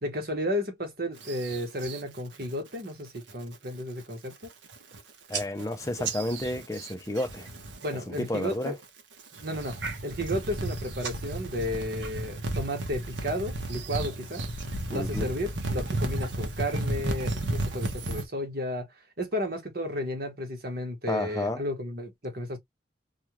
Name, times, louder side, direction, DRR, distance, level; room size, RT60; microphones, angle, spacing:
voice 1, 0.0-4.5 7.8-8.8 9.4-14.4 14.9-22.6, equal, 50° right, 1.1 m, -33 dB
sound 1, 1.2-2.0 2.4-2.8 3.2-3.5 4.0-4.1 4.3-5.0 5.3-7.9 8.1-8.7 9.2-18.2, right 2 dB, 75° right, 0.8 m, -33 dB
voice 2, 5.3-7.5 8.1-8.7 14.9-15.3 21.1-21.6, left 1 dB, 15° left, 0.5 m, -31 dB
2.4 x 2.4 x 2.9 m
head